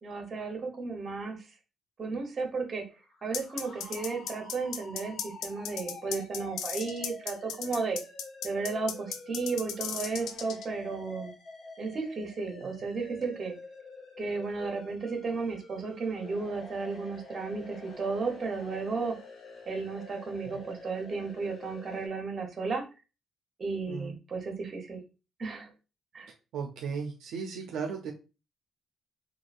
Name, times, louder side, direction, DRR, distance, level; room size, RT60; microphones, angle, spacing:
voice 1, 0.0-1.5 2.0-2.8 3.2-8.0 8.4-11.3 11.8-13.5 14.2-19.2 19.7-22.8 23.6-25.0 25.4-25.7 26.1-26.3, right 4 dB, 40° right, 2 dB, 1.0 m, -34 dB
sound 1, 3.0-22.1, left 2 dB, 60° left, 0.9 m, -48 dB
sound 2, 3.3-10.7, left 8 dB, 80° left, 0.3 m, -36 dB
voice 2, 26.5-28.1, right 6 dB, 80° right, 2 dB, 0.4 m, -36 dB
3.0 x 2.3 x 2.5 m, 0.31 s
cardioid pair, 90°, 0 cm